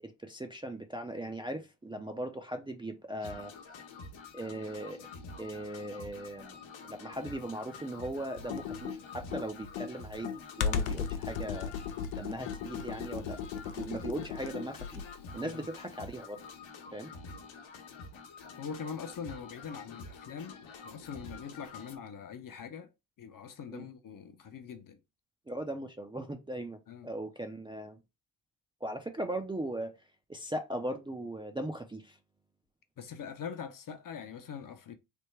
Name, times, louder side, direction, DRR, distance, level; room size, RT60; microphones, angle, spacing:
voice 1, 0.0-3.5 4.3-5.0 5.4-6.6 6.9-11.7 12.1-15.1 15.3-16.4 16.9-17.1 23.7-23.8 25.5-28.0 28.8-29.9 30.3-32.2, right 1 dB, 10° right, 0.4 m, -39 dB
sound 1, 3.2-22.0, left 4 dB, 65° left, 1.0 m, -48 dB
Computer keyboard, 8.4-15.2, left 7 dB, 80° left, 0.6 m, -36 dB
voice 2, 18.6-22.9 23.2-25.0 26.9-27.1 33.0-35.0, left 7 dB, 40° left, 0.7 m, -43 dB
3.4 x 2.1 x 3.2 m
supercardioid pair, 55°, 49 cm